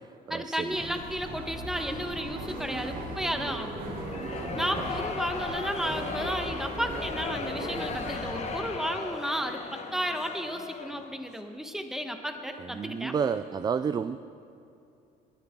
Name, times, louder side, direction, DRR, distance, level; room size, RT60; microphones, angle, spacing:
voice 1, 0.3-3.8 4.5-13.1, equal, ahead, 5 dB, 1.2 m, -33 dB
sound 1, 0.7-8.6, right 1 dB, 55° right, 3.4 m, -37 dB
sound 2, 3.9-11.2, left 5 dB, 40° left, 1.2 m, -37 dB
voice 2, 12.7-14.2, right 6 dB, 25° right, 13 dB, 0.3 m, -30 dB
21.0 x 13.5 x 3.7 m, 2.6 s
cardioid pair, 110°, 17 cm